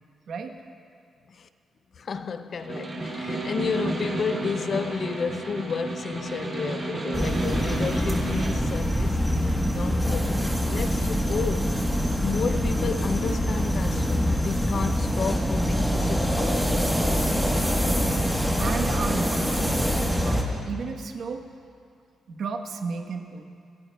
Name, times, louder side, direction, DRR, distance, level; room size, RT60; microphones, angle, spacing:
voice 1, 0.3-0.6 18.0-21.4 22.3-23.4, right 5 dB, 55° right, 1.0 m, -33 dB
voice 2, 2.0-9.2 9.6-11.8 12.2-17.1, left 5 dB, 40° left, 0.4 m, -32 dB
Snare drum, 2.5-8.7, right 2 dB, 30° right, 2.1 m, -32 dB
sound 1, 7.1-20.4, equal, ahead, 1.1 m, -24 dB
27.0 x 14.0 x 2.2 m
wide cardioid pair, 175°, 0 cm